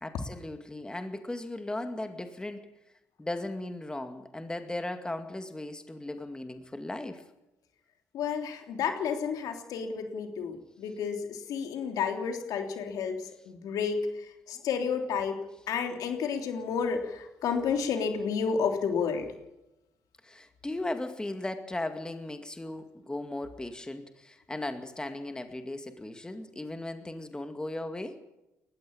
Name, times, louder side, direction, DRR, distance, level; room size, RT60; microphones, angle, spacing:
voice 1, 0.0-2.7 3.2-7.2 20.2-28.2, left 1 dB, 15° left, 7 dB, 2.2 m, -37 dB
voice 2, 8.1-14.1 14.5-19.3, left 6 dB, 80° left, 5 dB, 3.3 m, -31 dB
20.0 x 15.0 x 8.7 m, 0.93 s
cardioid pair, 85°, 6 cm